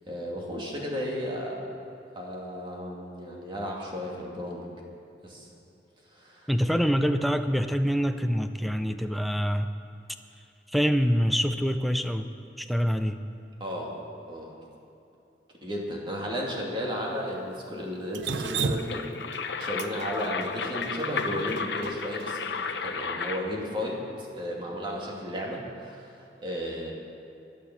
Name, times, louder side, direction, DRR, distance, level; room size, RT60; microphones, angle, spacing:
voice 1, 0.1-1.6 2.2-4.7 5.2-5.5 6.1-6.5 13.6-14.0 14.3-14.5 15.6-19.1 19.6-22.4 22.7-26.9, equal, 30° right, -2 dB, 2.2 m, -34 dB
voice 2, 6.5-9.7 10.7-13.2, equal, ahead, 7 dB, 0.5 m, -25 dB
Drip, 18.1-22.3, right 5 dB, 90° right, 0.6 m, -33 dB
sound 1, 18.6-23.6, left 5 dB, 70° left, 0.8 m, -33 dB
13.0 x 10.5 x 7.2 m, 2.7 s
head